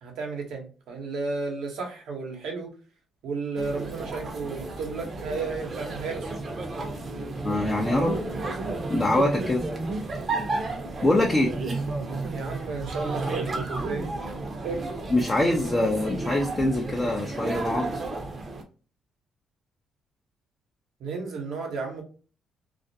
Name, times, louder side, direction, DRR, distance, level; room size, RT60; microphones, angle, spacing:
voice 1, 0.0-2.7 3.2-6.3 11.2-11.3 12.3-14.1 14.6-14.9 21.0-22.0, right 4 dB, 80° right, 2 dB, 0.9 m, -33 dB
sound 1, 3.6-18.6, right 2 dB, 40° right, 0.7 m, -32 dB
voice 2, 7.4-8.2 8.9-9.6 11.0-11.5 15.1-17.9, left 1 dB, 25° left, 0 dB, 0.5 m, -24 dB
2.4 x 2.1 x 2.6 m, 0.38 s
cardioid pair, 90°, 0 cm